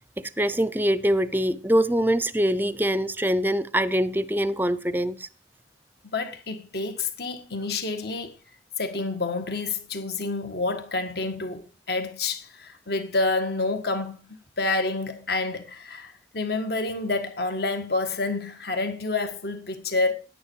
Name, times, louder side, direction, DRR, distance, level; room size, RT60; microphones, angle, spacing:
voice 1, 0.2-5.3, equal, 10° right, 0.6 m, -24 dB
voice 2, 6.0-8.3 8.8-20.1, left 3 dB, 60° left, 1.7 m, -28 dB
10.5 x 10.0 x 4.6 m
head